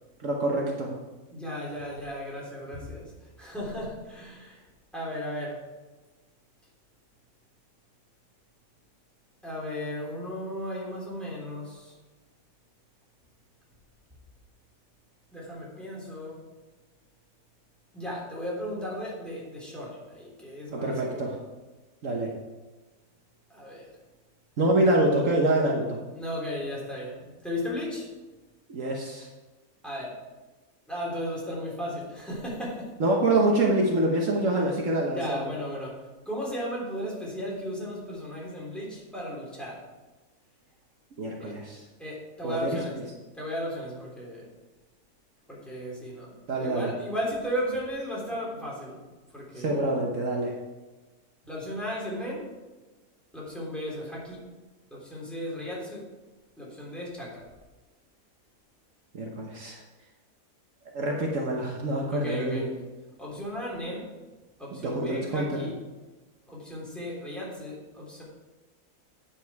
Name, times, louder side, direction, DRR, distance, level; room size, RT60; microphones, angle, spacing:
voice 1, 0.2-0.9 20.7-21.4 22.0-22.3 24.6-26.0 28.7-29.3 33.0-35.4 41.2-41.8 42.4-42.8 46.5-46.9 49.6-50.6 59.1-59.8 60.9-62.7 64.7-65.6, right 1 dB, 65° right, -1 dB, 1.4 m, -26 dB
voice 2, 1.3-3.1 3.4-4.6 4.9-5.6 9.4-11.9 15.3-16.4 17.9-21.4 23.5-23.9 26.1-28.1 29.8-30.1 30.9-32.9 35.1-39.8 41.4-41.6 42.0-43.0 43.3-44.5 45.5-46.3 46.6-49.0 49.3-49.8 51.4-52.5 53.3-54.4 54.9-56.1 56.6-57.4 62.1-62.7 63.2-64.0 64.6-65.8 66.5-68.2, equal, ahead, -5 dB, 3.2 m, -35 dB
9.4 x 7.4 x 4.7 m, 1.2 s
omnidirectional pair, 1.5 m